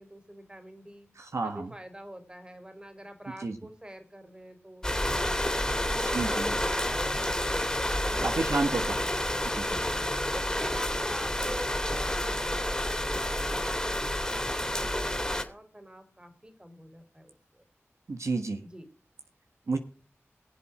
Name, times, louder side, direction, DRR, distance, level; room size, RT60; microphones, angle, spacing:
voice 1, 0.0-1.1 1.4-4.9 5.2-9.1 9.7-14.0 14.3-17.6 18.6-18.9, right 1 dB, 20° right, 9 dB, 3.4 m, -46 dB
voice 2, 1.2-1.7 3.4-3.5 6.1-6.6 8.2-9.0 9.5-9.8 18.1-18.6 19.7-19.8, right 3 dB, 75° right, 6 dB, 1.5 m, -30 dB
sound 1, 4.8-15.4, left 1 dB, 15° left, 2.6 m, -29 dB
21.0 x 7.6 x 4.9 m, 0.41 s
wide cardioid pair, 50°, 5 cm